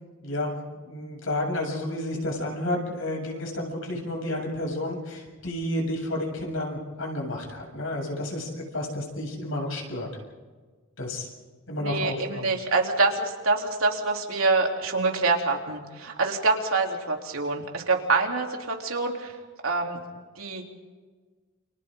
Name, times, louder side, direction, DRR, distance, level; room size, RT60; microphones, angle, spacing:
voice 1, 0.2-0.6 0.8-10.1 11.0-11.3 11.7-12.5, left 1 dB, 70° left, 1 dB, 7.7 m, -31 dB
voice 2, 11.8-19.3 19.6-20.0 20.3-20.6, right 3 dB, 75° right, 1 dB, 3.5 m, -25 dB
29.5 x 28.5 x 3.9 m, 1.4 s
head